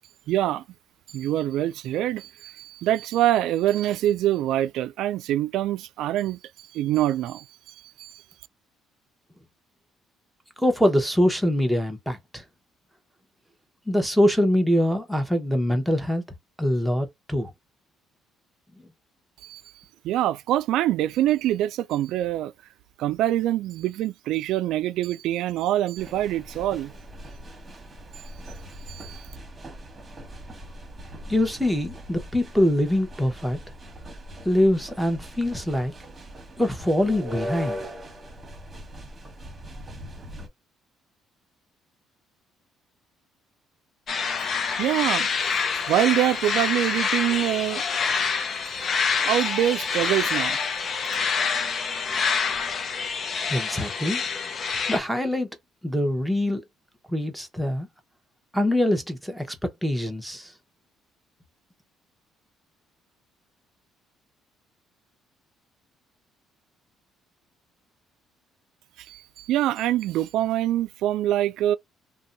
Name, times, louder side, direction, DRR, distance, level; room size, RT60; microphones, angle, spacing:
voice 1, 0.3-0.6 1.1-8.2 19.4-19.6 20.0-22.5 23.0-26.9 28.9-29.3 44.8-45.3 45.8-47.8 49.2-50.6 69.0-71.8, right 13 dB, 80° right, 0.3 m, -25 dB
voice 2, 10.6-12.4 13.9-16.2 16.6-17.5 31.3-33.6 34.4-35.9 36.6-37.8 53.5-54.2 54.9-55.5 55.8-56.6 57.1-57.9 58.5-60.5, left 1 dB, 5° right, 1.0 m, -24 dB
sound 1, 26.0-40.5, equal, 25° right, 1.3 m, -40 dB
sound 2, 44.1-55.0, left 5 dB, 50° left, 0.5 m, -26 dB
2.6 x 2.2 x 3.9 m
cardioid pair, 90°, 0 cm